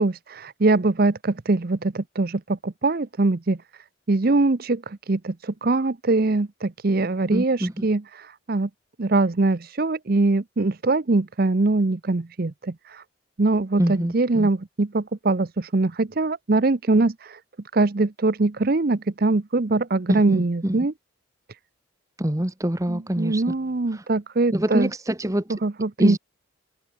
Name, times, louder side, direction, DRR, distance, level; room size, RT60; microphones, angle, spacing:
voice 1, 0.0-3.6 4.1-8.0 8.5-8.7 9.0-13.0 13.4-17.4 17.7-20.9 22.9-24.9 25.5-26.2, right 2 dB, 45° right, 0.7 m, -22 dB
voice 2, 7.3-7.9 13.8-14.5 20.1-20.9 22.2-23.5 23.9-24.0 24.5-25.5 26.0-26.2, right 1 dB, 15° right, 1.1 m, -25 dB
head